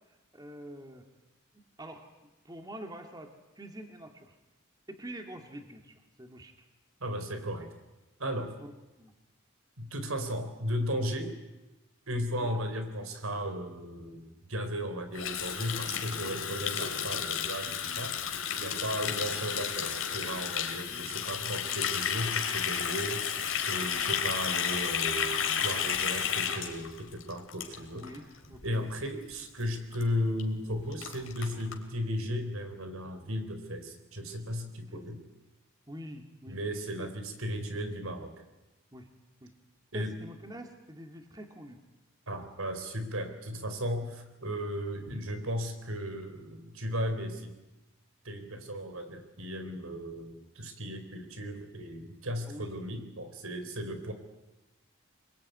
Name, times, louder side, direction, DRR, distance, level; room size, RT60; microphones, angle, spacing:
voice 1, 0.1-1.1 1.8-4.4 4.9-6.7 9.0-9.1 12.4-12.6 16.4-16.6 19.0-19.2 20.6-21.1 23.7-24.1 27.9-28.9 34.9-35.0 35.9-36.6 37.0-37.1 38.9-39.1 39.4-39.5 39.9-41.8 48.5-48.6 52.5-52.7, equal, 20° right, 4 dB, 2.3 m, -46 dB
voice 2, 7.0-7.7 8.2-8.5 9.8-11.3 12.1-18.2 18.6-23.3 23.7-28.1 28.6-35.2 36.5-38.3 39.9-40.1 42.3-47.5 48.2-54.1, equal, 90° right, 7 dB, 4.2 m, -35 dB
Water tap faucet, 15.1-28.2 28.4-28.7 29.0-29.3 29.6-29.7 29.9-30.0 30.4-30.5 30.7-31.8, left 8 dB, 75° left, 3.4 m, -32 dB
25.5 x 22.0 x 9.4 m, 1.0 s
head